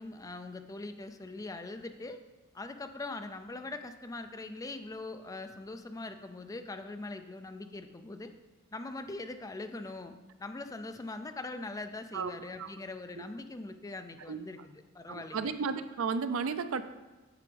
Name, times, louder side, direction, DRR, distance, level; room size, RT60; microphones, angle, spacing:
voice 1, 0.0-2.2 2.5-8.3 8.7-10.1 10.4-15.5, left 2 dB, 15° left, 8 dB, 0.4 m, -42 dB
voice 2, 15.1-16.8, right 5 dB, 70° right, 11 dB, 0.4 m, -33 dB
8.3 x 6.9 x 3.4 m, 1.1 s
head